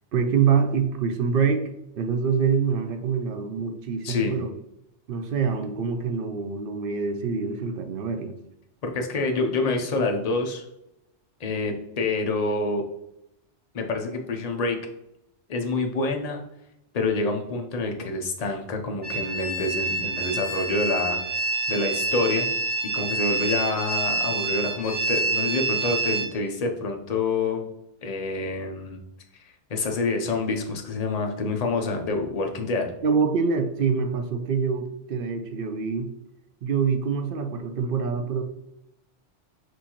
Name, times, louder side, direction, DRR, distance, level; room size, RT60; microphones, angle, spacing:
voice 1, 0.1-1.6 2.0-4.5 5.1-8.4 33.0-36.1 36.6-38.4, right 6 dB, 60° right, 6 dB, 0.6 m, -25 dB
voice 2, 4.0-4.4 8.8-10.7 11.4-12.8 13.7-14.8 15.5-16.4 16.9-21.4 21.7-22.5 22.9-27.7 28.0-29.0 29.3-29.4 29.7-32.9, left 3 dB, 40° left, 3 dB, 0.6 m, -27 dB
sound 1, 19.0-26.3, right 3 dB, 10° right, 1.3 m, -27 dB
6.2 x 2.6 x 2.9 m, 0.83 s
omnidirectional pair, 1.2 m